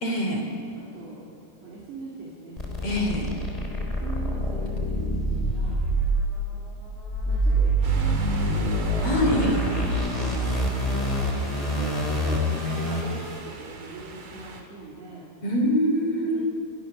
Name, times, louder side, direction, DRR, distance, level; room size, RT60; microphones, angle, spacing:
voice 1, 0.0-0.4 2.8-3.3 9.0-9.6 15.4-16.4, equal, 35° left, 2 dB, 3.8 m, -24 dB
voice 2, 0.7-1.3 1.6-2.6 3.5-5.8 7.3-8.8 9.7-10.6 11.7-11.9 12.2-15.3 16.2-16.4, right 3 dB, 65° right, -6 dB, 5.5 m, -41 dB
sound 1, 2.6-13.4, right 1 dB, 10° left, 2.7 m, -26 dB
sound 2, 7.8-14.6, right 3 dB, 50° right, 3.7 m, -40 dB
30.0 x 21.5 x 6.8 m, 2.7 s
omnidirectional pair, 5.3 m